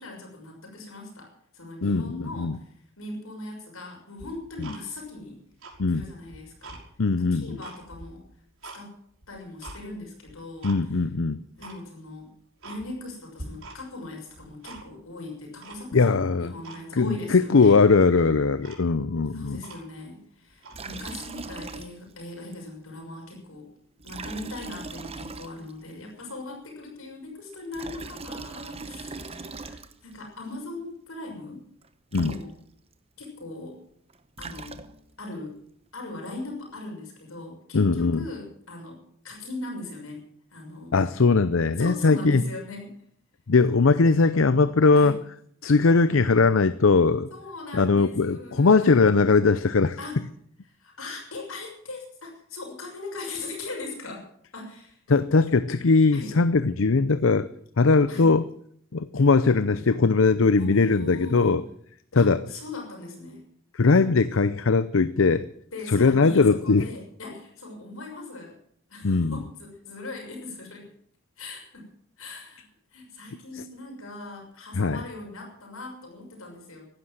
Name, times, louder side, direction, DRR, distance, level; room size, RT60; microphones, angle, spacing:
voice 1, 0.0-2.7 3.0-5.4 5.9-6.8 7.3-8.2 8.7-8.9 9.3-10.7 11.6-12.3 12.6-17.8 19.3-23.7 24.0-31.6 32.1-32.5 33.2-33.8 34.4-34.8 35.2-35.6 35.9-40.2 40.5-40.9 41.8-43.0 44.9-45.2 47.3-49.0 50.0-50.2 50.8-54.3 54.5-55.0 56.1-56.3 58.1-58.4 60.6-61.6 62.1-63.4 65.7-68.6 68.9-70.9 71.4-71.9 72.2-72.6 72.9-76.8, left 2 dB, 85° left, 1 dB, 6.3 m, -39 dB
voice 2, 1.8-2.6 4.6-4.7 5.8-6.0 7.0-7.6 10.6-11.4 15.9-16.5 16.9-19.6 32.1-32.3 37.7-38.2 40.9-42.4 43.5-45.2 45.6-47.3 47.7-50.0 55.1-57.5 57.8-58.5 58.9-61.6 62.1-62.4 63.7-65.4 65.9-66.9 69.0-69.4 74.7-75.0, left 4 dB, 65° left, 14 dB, 0.6 m, -20 dB
Tick-tock, 4.2-5.2 5.5-6.8 7.3-8.8 9.2-9.8 10.3-10.8 11.1-11.2 11.6-11.8 12.2-12.3 12.6-13.1 13.4-14.0 14.3-15.1 15.6-16.2 16.6-16.8 17.2-17.3 17.6-17.8 18.3-18.4 18.6-20.1 20.6-20.8, right 2 dB, 75° right, 5.9 m, -44 dB
Liquid, 20.7-22.2 22.5-22.6 24.0-25.9 27.5-30.2 31.8-31.9 32.1-32.9 34.1-35.2, right 3 dB, 30° right, 1.0 m, -40 dB
15.5 x 12.0 x 7.6 m, 0.64 s
head